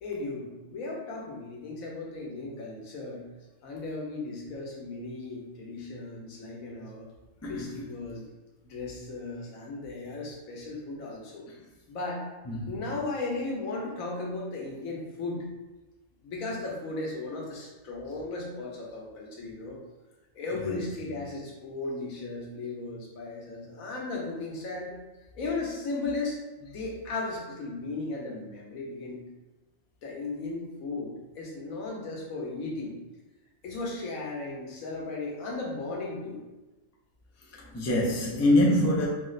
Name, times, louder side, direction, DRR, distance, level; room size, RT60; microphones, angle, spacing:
voice 1, 0.0-3.2 3.6-7.1 7.5-8.2 8.6-11.5 11.9-12.3 12.7-15.4 16.2-19.8 20.3-24.9 25.3-29.2 30.0-33.0 33.6-36.4, left 3 dB, 80° left, 1.3 m, -36 dB
voice 2, 20.5-20.9 37.6-39.1, left 1 dB, 25° left, 0.3 m, -25 dB
4.5 x 2.1 x 3.9 m
omnidirectional pair, 1.4 m